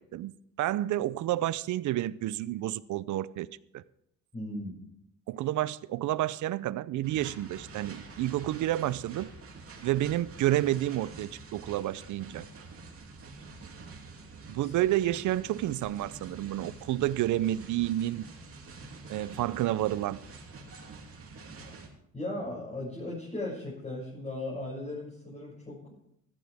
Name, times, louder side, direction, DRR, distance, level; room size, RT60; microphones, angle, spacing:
voice 1, 0.1-3.5 3.7-3.8 5.3-9.3 9.8-12.5 14.5-18.3 19.1-20.2, right 14 dB, 75° right, 0.6 m, -30 dB
voice 2, 4.3-4.7 14.6-14.7 22.1-25.9, left 1 dB, 20° left, 6.8 m, -37 dB
sound 1, 7.0-21.9, right 3 dB, 50° right, 2.7 m, -47 dB
16.0 x 13.5 x 3.5 m
cardioid pair, 90°, 30 cm